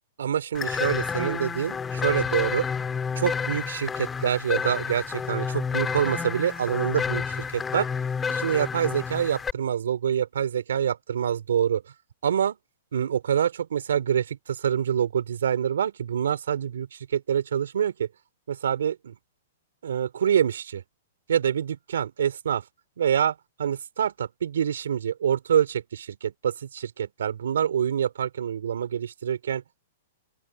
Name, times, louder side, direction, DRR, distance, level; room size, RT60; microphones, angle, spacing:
voice 1, 0.2-2.7 3.2-7.9 8.3-11.8 12.2-12.6 12.9-18.1 18.5-19.1 19.8-20.8 21.3-22.6 23.0-29.6, right 9 dB, 80° right, 3.4 m, -26 dB
sound 1, 0.5-9.5, left 6 dB, 15° left, 1.6 m, -30 dB
open air
hypercardioid pair, 135°, 0 cm